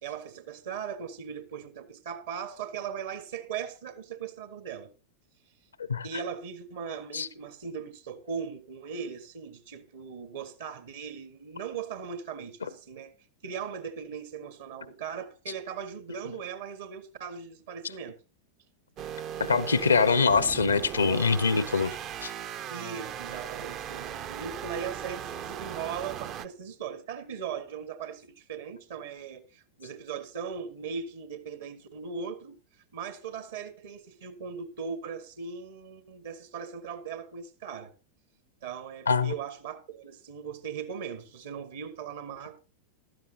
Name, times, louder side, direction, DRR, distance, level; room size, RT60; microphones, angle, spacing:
voice 1, 0.0-4.9 6.0-13.1 13.4-18.2 22.7-32.5 32.9-37.9 38.6-42.6, right 6 dB, 60° right, 1.6 m, -39 dB
sound 1, 19.0-26.5, right 10 dB, 35° right, 0.6 m, -38 dB
voice 2, 19.5-22.0 22.2-22.3 39.1-39.3, left 5 dB, 75° left, 0.8 m, -23 dB
15.5 x 12.5 x 2.8 m
figure-of-eight pair, 90°, 0 cm